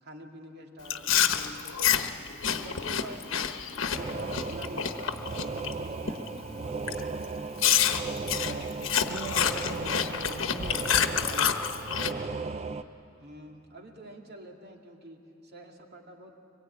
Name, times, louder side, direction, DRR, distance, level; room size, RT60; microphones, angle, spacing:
voice 1, 0.0-2.1 2.5-3.4 3.8-6.8 13.2-16.3, equal, 55° right, 2 dB, 2.5 m, -47 dB
Chewing mastication, 0.9-5.7 6.1-6.4 6.9-7.0 7.6-12.1, left 8 dB, 80° left, 1.1 m, -28 dB
sound 1, 3.9-12.8, right 4 dB, 35° right, 0.5 m, -36 dB
voice 2, 8.2-11.5, right 3 dB, 80° right, 3 dB, 1.1 m, -42 dB
24.0 x 21.0 x 9.0 m, 2.7 s
head